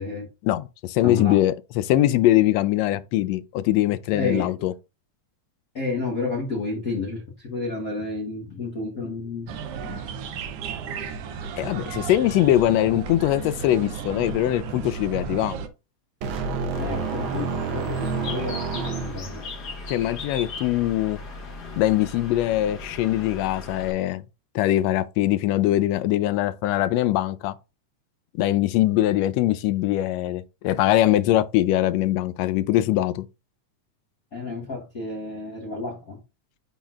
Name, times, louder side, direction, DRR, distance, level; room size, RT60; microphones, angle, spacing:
voice 1, 0.4-4.7 11.5-15.6 19.9-21.2 21.8-24.2 24.5-27.5 28.4-33.2, left 14 dB, 80° left, 1.6 m, -22 dB
voice 2, 1.0-1.4 4.1-4.5 5.7-9.5 9.9-10.0 16.8-19.5 25.5-25.6 34.3-36.2, left 3 dB, 60° left, 0.9 m, -31 dB
sound 1, 9.5-15.7, right 6 dB, 70° right, 1.5 m, -34 dB
sound 2, 16.2-19.5, right 5 dB, 90° right, 1.1 m, -29 dB
Bird, 16.7-23.9, left 3 dB, 45° left, 1.6 m, -37 dB
10.0 x 4.1 x 2.4 m
omnidirectional pair, 3.4 m